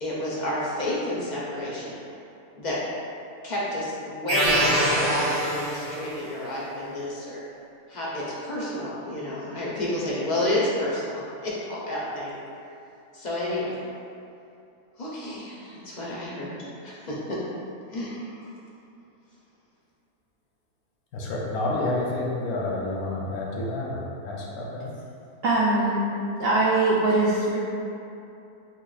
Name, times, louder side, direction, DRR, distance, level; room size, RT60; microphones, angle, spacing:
voice 1, 0.0-2.0 2.5-2.8 3.4-7.4 7.9-12.4 13.1-13.8 15.0-17.4 17.9-18.5, left 1 dB, 65° left, -7 dB, 0.4 m, -30 dB
sound 1, 4.3-6.2, right 1 dB, 35° right, 1.3 m, -24 dB
voice 2, 21.1-24.9, left 2 dB, 85° left, -3 dB, 1.2 m, -29 dB
voice 3, 25.4-26.0 26.4-27.6, right 2 dB, 85° right, -6 dB, 0.5 m, -21 dB
6.1 x 2.1 x 2.3 m, 2.7 s
omnidirectional pair, 1.6 m